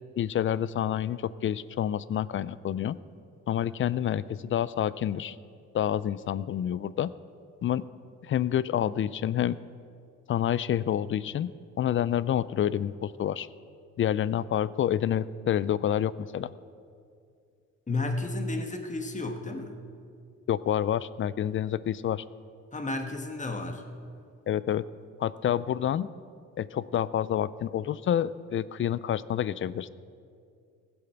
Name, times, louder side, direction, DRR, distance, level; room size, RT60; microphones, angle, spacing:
voice 1, 0.2-3.0 3.5-5.4 5.7-7.1 7.6-7.8 8.2-9.6 10.3-11.5 11.8-13.5 14.0-16.5 20.5-22.2 24.5-24.8 25.2-26.1 26.6-29.9, left 10 dB, 45° left, 18 dB, 0.4 m, -28 dB
voice 2, 17.9-19.8 22.7-23.8, left 2 dB, 25° left, 5 dB, 1.4 m, -32 dB
15.5 x 7.8 x 5.8 m, 2.3 s
cardioid pair, 90°, 30 cm